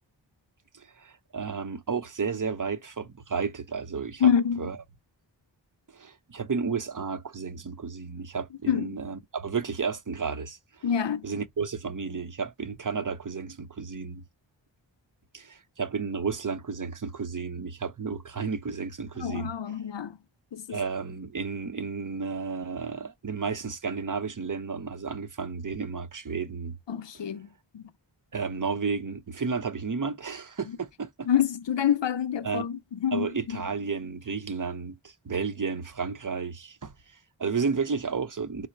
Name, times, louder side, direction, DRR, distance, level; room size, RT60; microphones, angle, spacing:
voice 1, 0.7-4.3 4.6-4.8 5.9-10.9 11.2-14.2 15.3-19.7 20.7-26.8 28.3-31.3 32.4-32.7 33.1-38.7, right 5 dB, 40° right, 0.6 m, -32 dB
voice 2, 4.2-4.6 8.7-8.9 10.8-11.2 19.2-20.2 20.5-20.8 26.9-27.5 27.7-27.8 31.3-33.3, left 8 dB, 65° left, 0.5 m, -26 dB
4.0 x 2.1 x 4.2 m
wide cardioid pair, 40°, 47 cm